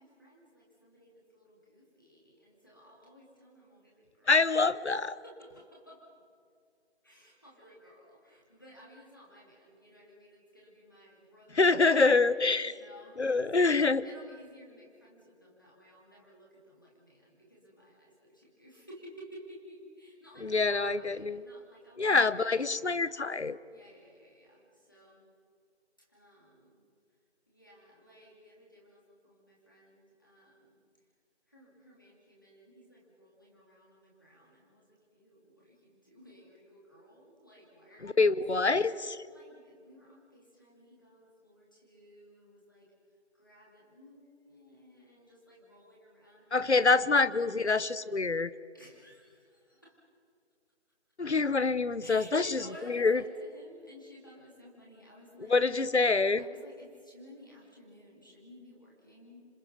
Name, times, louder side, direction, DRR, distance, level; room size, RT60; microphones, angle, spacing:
voice 1, 0.0-4.3 5.2-6.1 7.0-12.2 12.6-22.7 23.7-25.3 26.0-26.9 27.5-30.8 31.5-38.3 39.3-42.9 43.3-47.3 48.7-50.0 52.0-55.6 56.4-59.5, equal, 20° left, -4 dB, 2.7 m, -55 dB
voice 2, 4.3-5.2 11.5-12.7 13.2-14.0 20.4-21.4 22.0-23.6 38.0-39.2 46.5-48.5 51.2-52.6 52.9-53.2 55.5-56.4, left 3 dB, 75° left, 16 dB, 1.0 m, -26 dB
27.0 x 26.5 x 5.4 m, 2.3 s
figure-of-eight pair, 180°, 34 cm